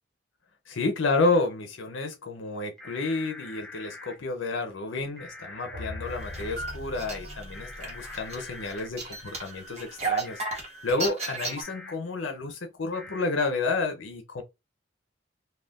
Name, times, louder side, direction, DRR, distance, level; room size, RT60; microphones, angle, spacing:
voice 1, 0.7-10.4 10.8-14.4, left 3 dB, 80° left, 0.6 m, -30 dB
sound 1, 2.8-4.1 5.2-6.5 7.5-8.9 10.2-10.6 11.6-11.9 12.9-13.3, left 2 dB, 5° left, 0.8 m, -44 dB
sound 2, 5.4-9.4, left 1 dB, 70° right, 1.1 m, -42 dB
sound 3, 6.1-11.6, right 4 dB, 35° right, 1.1 m, -35 dB
2.5 x 2.3 x 3.4 m
head